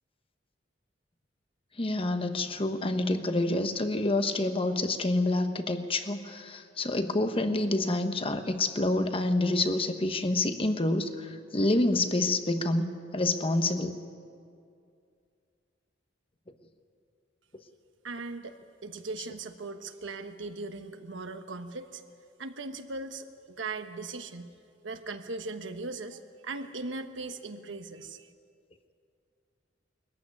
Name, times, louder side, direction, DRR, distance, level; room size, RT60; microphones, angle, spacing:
voice 1, 1.8-13.9, left 2 dB, 30° left, 8 dB, 1.1 m, -28 dB
voice 2, 18.0-22.0 22.4-24.5 24.8-28.3, right 3 dB, 75° right, 7 dB, 1.2 m, -39 dB
21.0 x 14.5 x 9.8 m, 2.3 s
head